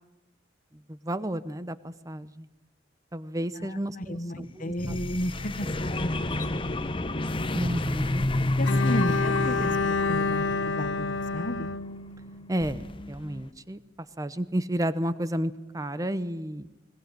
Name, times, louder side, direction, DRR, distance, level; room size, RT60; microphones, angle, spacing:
voice 1, 0.9-2.5 3.1-5.0 7.5-8.3 12.5-13.8 14.2-16.6, right 1 dB, 20° right, 15 dB, 0.8 m, -32 dB
voice 2, 3.5-6.6 8.4-9.8 10.1-11.7, left 1 dB, 45° left, 12 dB, 1.3 m, -33 dB
sound 1, 4.8-11.9 12.6-13.5, left 1 dB, 30° left, 0.9 m, -30 dB
Bowed string instrument, 8.6-12.7, left 4 dB, 75° left, 0.8 m, -29 dB
21.5 x 19.0 x 9.0 m, 1.0 s
head